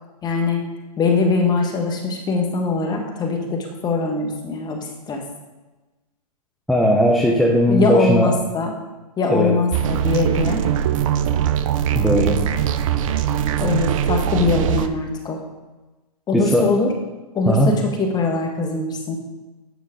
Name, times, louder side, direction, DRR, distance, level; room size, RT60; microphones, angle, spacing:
voice 1, 0.2-0.6 1.0-5.2 7.7-8.7 9.2-10.6 13.6-15.4 16.3-16.9 17.3-19.1, left 3 dB, 20° left, 3 dB, 1.4 m, -22 dB
voice 2, 6.7-8.3 9.3-9.6 11.9-12.4 16.3-16.7 17.5-17.7, equal, ahead, -1 dB, 0.8 m, -17 dB
sound 1, 9.7-14.9, right 10 dB, 55° right, 0.6 m, -21 dB
9.2 x 5.4 x 3.7 m, 1.1 s
hypercardioid pair, 125°, 20 cm